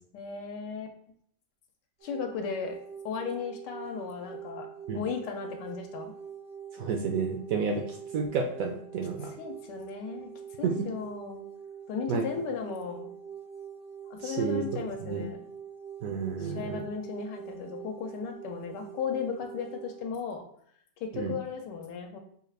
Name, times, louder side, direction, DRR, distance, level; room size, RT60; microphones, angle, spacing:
voice 1, 0.1-0.9 2.0-2.8 3.0-6.1 9.2-11.4 11.9-13.1 14.1-15.4 16.4-20.4 21.0-22.2, left 6 dB, 80° left, 4 dB, 1.2 m, -36 dB
sound 1, 2.0-20.0, right 7 dB, 45° right, 0.5 m, -44 dB
voice 2, 6.7-9.3 10.6-10.9 12.1-12.3 14.2-15.3 16.0-16.8 21.1-21.3, right 5 dB, 70° right, 2 dB, 0.8 m, -31 dB
4.9 x 2.3 x 3.2 m, 0.65 s
omnidirectional pair, 1.8 m